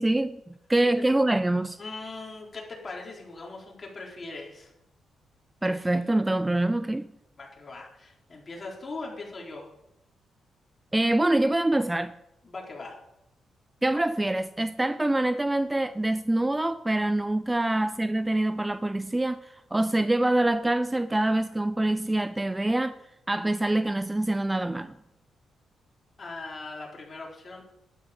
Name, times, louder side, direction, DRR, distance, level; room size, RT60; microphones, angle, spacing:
voice 1, 0.0-1.8 5.6-7.1 10.9-12.2 13.8-23.0 23.3-25.0, right 1 dB, 10° right, 0.4 m, -25 dB
voice 2, 1.8-4.7 7.4-9.7 12.4-13.0 26.2-27.6, left 3 dB, 35° left, 3.9 m, -40 dB
12.0 x 10.5 x 5.1 m
cardioid pair, 105°, 0 cm